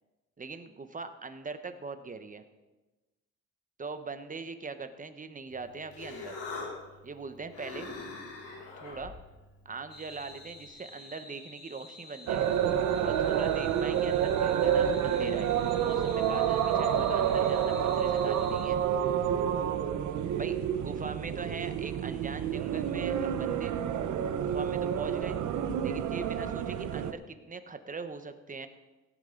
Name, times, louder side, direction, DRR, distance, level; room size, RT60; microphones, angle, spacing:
voice 1, 0.4-2.4 3.8-6.3 7.0-7.9 8.8-9.1 9.6-12.5 13.0-18.8 20.3-23.7 24.4-25.4 25.8-28.7, right 4 dB, 25° right, 9 dB, 1.1 m, -41 dB
Human voice, 5.5-10.7, left 3 dB, 90° left, 3.6 m, -44 dB
sound 1, 9.9-18.7, left 2 dB, 60° left, 5.2 m, -49 dB
sound 2, 12.3-27.1, right 9 dB, 75° right, 0.8 m, -29 dB
17.5 x 9.8 x 3.9 m, 1.1 s
cardioid pair, 90°, 30 cm